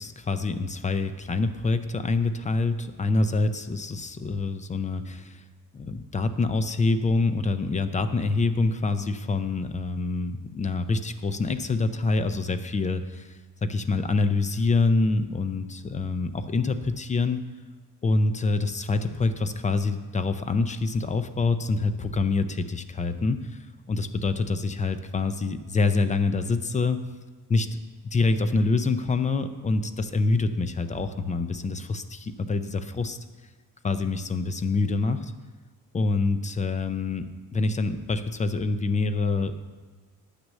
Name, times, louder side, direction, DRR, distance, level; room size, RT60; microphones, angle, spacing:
voice 1, 0.0-5.4 5.7-17.4 18.0-23.6 23.9-27.0 27.5-27.8 28.1-33.2 33.8-35.3 35.9-37.3 37.5-39.5, left 3 dB, 20° left, 10 dB, 0.4 m, -26 dB
9.7 x 6.2 x 7.3 m, 1.4 s
cardioid pair, 175°, 38 cm